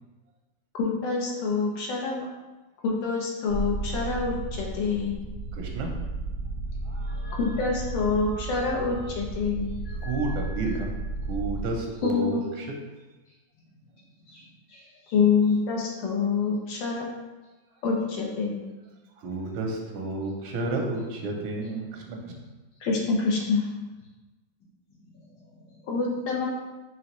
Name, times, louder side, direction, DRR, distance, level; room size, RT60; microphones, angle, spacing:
voice 1, 0.8-2.2 2.8-5.2 7.4-9.7 12.0-12.4 15.1-17.1 17.8-18.6 22.8-23.7 25.9-26.5, left 4 dB, 70° left, -2 dB, 1.4 m, -26 dB
sound 1, 3.5-11.7, right 2 dB, 45° left, 1.1 m, -33 dB
voice 2, 5.6-5.9 6.9-7.4 10.0-10.9 11.3-12.7 19.2-22.2, right 2 dB, 90° right, 1 dB, 1.5 m, -31 dB
voice 3, 14.3-15.2 21.6-21.7 25.1-26.1 26.4-26.5, left 1 dB, 85° left, -9 dB, 2.5 m, -55 dB
4.9 x 3.0 x 3.0 m, 1.2 s
omnidirectional pair, 2.2 m